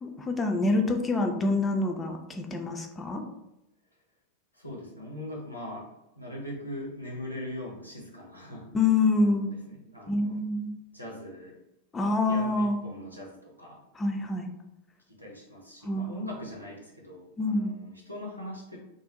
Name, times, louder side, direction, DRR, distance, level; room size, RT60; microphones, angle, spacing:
voice 1, 0.0-3.2 8.7-9.5 10.1-10.7 11.9-12.8 14.0-14.5 15.8-16.2 17.4-17.8, left 2 dB, 15° left, 3 dB, 0.3 m, -26 dB
voice 2, 4.5-5.9 6.1-8.8 9.2-10.4 10.9-11.6 12.1-13.8 15.1-18.8, left 1 dB, 90° right, -2 dB, 0.6 m, -41 dB
2.4 x 2.0 x 2.7 m, 0.89 s
figure-of-eight pair, 90°, 0 cm